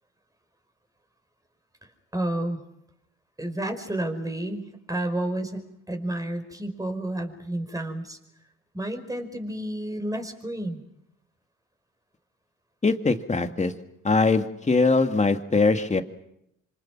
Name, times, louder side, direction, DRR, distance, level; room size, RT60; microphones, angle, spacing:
voice 1, 2.1-2.6 3.4-5.6 5.9-8.2 8.7-10.8, right 1 dB, 10° right, 6 dB, 5.3 m, -30 dB
voice 2, 12.8-13.7 14.0-16.0, left 3 dB, 25° left, 7 dB, 2.1 m, -22 dB
27.5 x 26.0 x 6.1 m, 0.80 s
cardioid pair, 80°, 30 cm